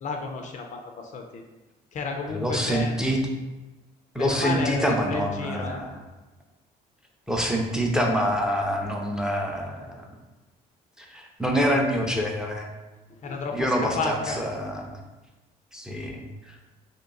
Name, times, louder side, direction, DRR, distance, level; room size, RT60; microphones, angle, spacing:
voice 1, 0.0-1.4 1.9-3.0 4.2-5.8 13.1-14.4, left 4 dB, 45° left, 3 dB, 0.5 m, -32 dB
voice 2, 2.3-3.2 4.1-5.9 7.3-10.0 11.0-12.7 13.5-15.0 15.7-16.5, equal, 5° right, 0 dB, 0.5 m, -26 dB
3.0 x 2.9 x 3.8 m, 1.1 s
cardioid pair, 110°, 17 cm